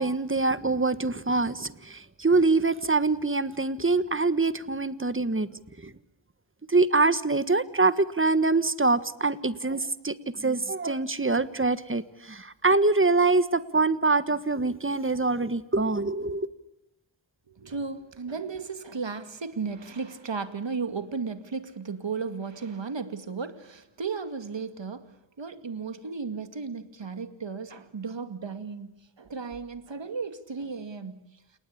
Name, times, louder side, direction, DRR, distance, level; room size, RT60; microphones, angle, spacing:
voice 1, 0.0-5.5 5.8-5.9 6.7-16.5, right 3 dB, 25° right, 1.4 m, -24 dB
voice 2, 17.5-28.9 29.2-31.4, right 5 dB, 70° right, 2.3 m, -35 dB
30.0 x 19.0 x 8.7 m
wide cardioid pair, 65°, 46 cm